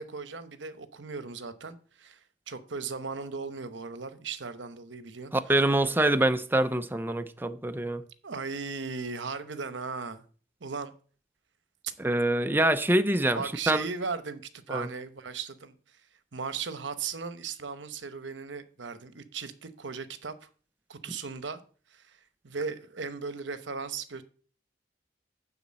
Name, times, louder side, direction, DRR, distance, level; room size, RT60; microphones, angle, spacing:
voice 1, 0.0-2.2 2.5-5.6 8.2-10.2 10.6-10.9 13.3-14.4 14.7-16.0 16.3-20.5 20.9-21.6 21.9-24.2, right 5 dB, 75° right, 0.9 m, -37 dB
voice 2, 5.5-8.0 12.0-13.4 13.7-13.8 14.7-14.9, right 1 dB, 10° right, 0.5 m, -25 dB
9.8 x 4.0 x 7.4 m
head